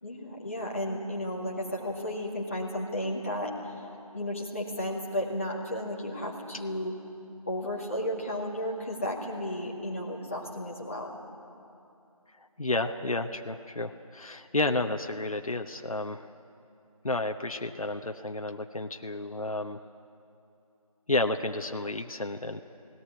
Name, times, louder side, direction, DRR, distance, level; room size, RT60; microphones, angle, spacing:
voice 1, 0.0-3.5 4.1-7.0 7.5-11.2, left 1 dB, 20° left, -4 dB, 2.0 m, -33 dB
voice 2, 12.6-16.3 17.0-19.8 21.1-22.6, left 2 dB, 65° left, 6 dB, 0.9 m, -31 dB
18.5 x 17.5 x 9.7 m, 2.7 s
figure-of-eight pair, 175°, 19 cm